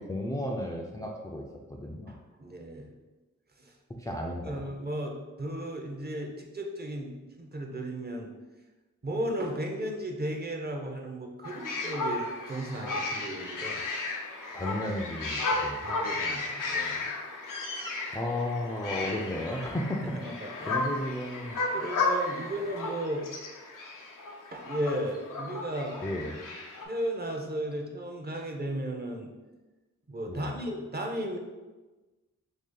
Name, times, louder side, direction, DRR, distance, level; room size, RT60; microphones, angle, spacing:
voice 1, 0.0-1.4 1.7-2.1 4.0-4.6 14.5-15.9 18.1-20.0 20.6-21.6 26.0-26.3 30.3-30.6, left 1 dB, 10° left, 0 dB, 0.4 m, -33 dB
voice 2, 2.1-2.9 3.6-3.7 4.5-8.3 9.0-13.8 15.8-17.0 20.2-20.8 21.7-23.3 24.5-26.0 26.8-29.3 30.1-31.4, right 1 dB, 30° right, 1 dB, 0.6 m, -35 dB
sound 1, 11.4-26.9, left 3 dB, 85° left, 0.7 m, -34 dB
2.7 x 2.7 x 3.8 m, 1.2 s
cardioid pair, 50°, 31 cm